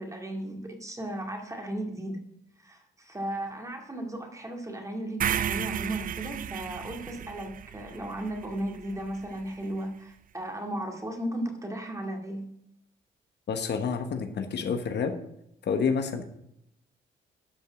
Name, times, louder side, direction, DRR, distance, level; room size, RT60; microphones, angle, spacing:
voice 1, 0.0-2.2 2.6-12.5, right 1 dB, 15° right, 3 dB, 2.2 m, -35 dB
sound 1, 5.2-9.3, right 9 dB, 45° right, 0.4 m, -33 dB
voice 2, 13.5-15.2 15.6-16.2, left 5 dB, 60° left, 7 dB, 1.2 m, -28 dB
12.0 x 5.3 x 6.2 m, 0.78 s
cardioid pair, 90°, 20 cm